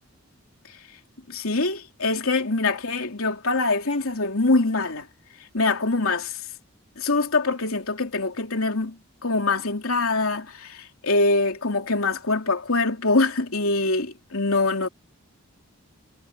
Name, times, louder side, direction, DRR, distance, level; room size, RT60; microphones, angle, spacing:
voice 1, 1.3-5.1 5.5-6.4 7.0-14.9, left 3 dB, 75° left, 3.1 m, -24 dB
head